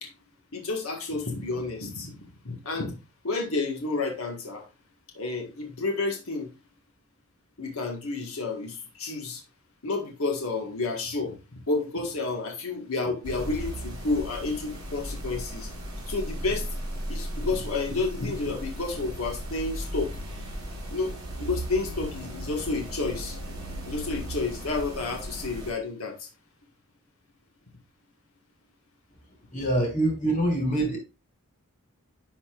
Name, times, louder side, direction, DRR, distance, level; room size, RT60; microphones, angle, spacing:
voice 1, 0.5-3.0 3.2-4.7 5.1-6.5 7.6-9.4 9.8-11.4 11.7-15.7 16.1-16.7 17.1-20.2 20.9-23.4 23.9-26.3, left 3 dB, 70° left, 1.9 m, -30 dB
sound 1, 13.2-25.7, right 1 dB, 20° right, 4.7 m, -36 dB
voice 2, 29.5-31.0, right 1 dB, 35° left, 3.1 m, -25 dB
10.5 x 5.7 x 2.5 m
head